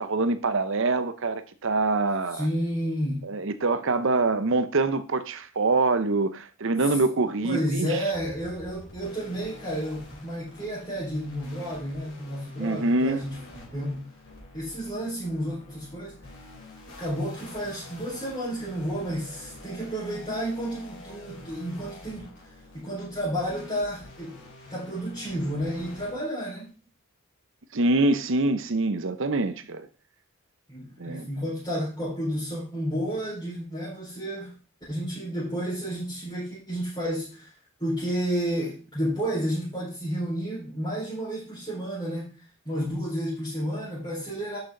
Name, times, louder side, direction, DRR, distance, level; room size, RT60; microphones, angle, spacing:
voice 1, 0.0-2.5 3.2-7.9 12.6-13.2 27.7-29.8 31.0-31.3, right 3 dB, 60° right, 0.7 m, -25 dB
voice 2, 2.3-3.3 6.9-7.0 7.4-14.1 14.5-16.1 17.0-24.4 24.7-26.7 30.7-34.5 34.9-37.5 37.8-42.3 42.6-44.6, equal, 20° left, 4.3 m, -31 dB
sound 1, 8.1-26.1, left 2 dB, 55° left, 4.0 m, -47 dB
11.0 x 6.2 x 3.8 m
head